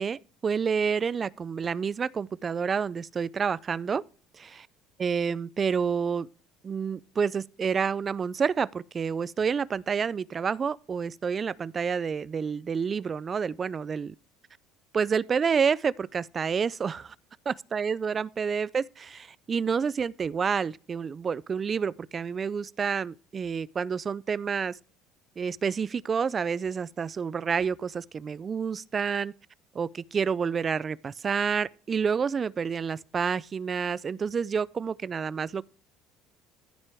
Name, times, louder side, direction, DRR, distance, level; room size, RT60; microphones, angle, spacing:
voice 1, 0.0-4.0 4.3-4.7 5.0-6.3 6.6-14.1 14.9-17.2 17.5-24.8 25.4-29.3 29.7-35.6, right 6 dB, 30° right, 0.3 m, -29 dB
14.0 x 5.8 x 3.4 m
cardioid pair, 125°, 0 cm